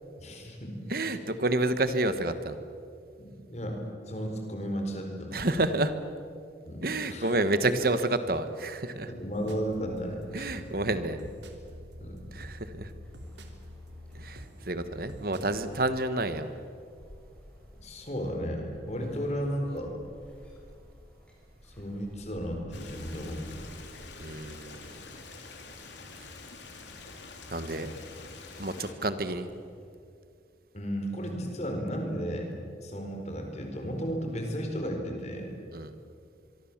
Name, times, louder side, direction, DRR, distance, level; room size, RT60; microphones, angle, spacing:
voice 1, 0.2-0.8 3.2-3.8 4.1-5.3 6.6-7.3 9.1-10.5 12.0-12.2 17.8-19.9 21.6-23.6 30.7-35.5, equal, 35° left, 3 dB, 4.5 m, -34 dB
voice 2, 0.9-2.6 5.3-5.9 6.8-9.1 10.3-11.2 12.3-12.9 14.1-16.5 19.0-19.1 24.2-24.9 27.5-27.9 28.6-29.5 35.7-35.9, right 2 dB, 50° right, 11 dB, 1.4 m, -29 dB
sound 1, 9.3-16.0, equal, 75° right, 3.0 m, -47 dB
sound 2, 13.0-29.9, equal, 5° left, 5.6 m, -55 dB
Stream, 22.7-28.9, left 4 dB, 75° left, 3.5 m, -47 dB
25.0 x 24.0 x 7.4 m, 2.3 s
head